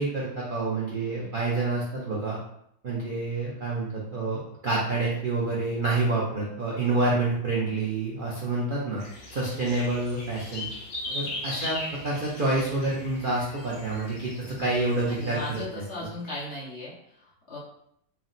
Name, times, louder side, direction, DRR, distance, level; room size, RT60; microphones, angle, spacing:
voice 1, 0.0-2.4 2.8-9.0 9.3-10.7 11.1-15.6 16.0-16.1, right 2 dB, 65° right, -5 dB, 0.5 m, -28 dB
sound 1, 9.0-15.6, left 2 dB, 75° left, 1.6 m, -39 dB
voice 2, 11.0-11.4 15.1-17.6, left 2 dB, 40° left, -7 dB, 1.3 m, -38 dB
4.5 x 2.1 x 4.0 m, 0.72 s
omnidirectional pair, 2.0 m